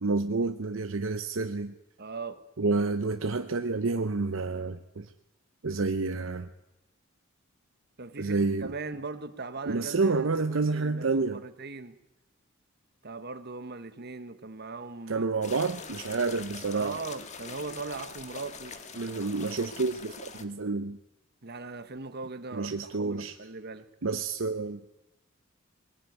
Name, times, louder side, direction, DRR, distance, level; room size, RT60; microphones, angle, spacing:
voice 1, 0.0-1.7 2.6-5.1 5.6-6.5 8.2-8.7 9.7-11.4 15.1-17.0 19.0-21.0 22.5-23.3 24.0-24.8, right 3 dB, 70° right, 0.8 m, -29 dB
voice 2, 2.0-2.4 8.0-12.0 13.0-15.3 16.7-18.8 21.4-23.9, right 3 dB, 50° right, 1.4 m, -39 dB
sound 1, 15.4-20.4, left 5 dB, 35° left, 1.5 m, -44 dB
21.0 x 17.0 x 9.4 m
head